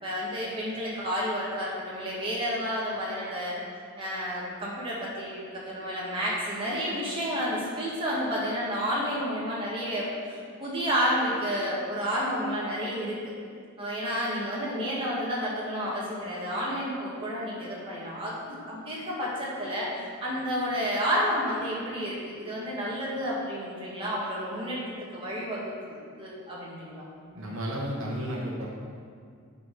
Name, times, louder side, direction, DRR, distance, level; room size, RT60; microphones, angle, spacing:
voice 1, 0.0-3.6 4.0-13.2 13.8-27.0, equal, 25° right, -6 dB, 1.9 m, -31 dB
voice 2, 27.3-28.7, equal, 70° right, -2 dB, 1.1 m, -32 dB
9.4 x 4.8 x 5.5 m, 2.2 s
head